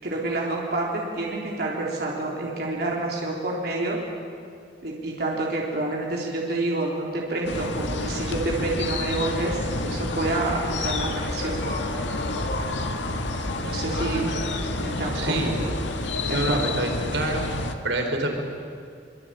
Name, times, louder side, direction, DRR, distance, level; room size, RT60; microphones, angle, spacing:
voice 1, 0.0-4.0 4.8-11.5 13.6-14.3 14.8-15.2 15.4-15.5 16.3-16.6, right 2 dB, 60° right, -2 dB, 3.8 m, -28 dB
sound 1, 7.4-17.7, left 2 dB, 85° left, 2.0 m, -29 dB
sound 2, 10.1-16.9, left 2 dB, 60° left, 4.1 m, -36 dB
voice 2, 15.1-15.5 16.2-17.5 17.8-18.3, right 1 dB, 75° right, 3 dB, 4.2 m, -26 dB
25.0 x 24.0 x 9.0 m, 2.4 s
head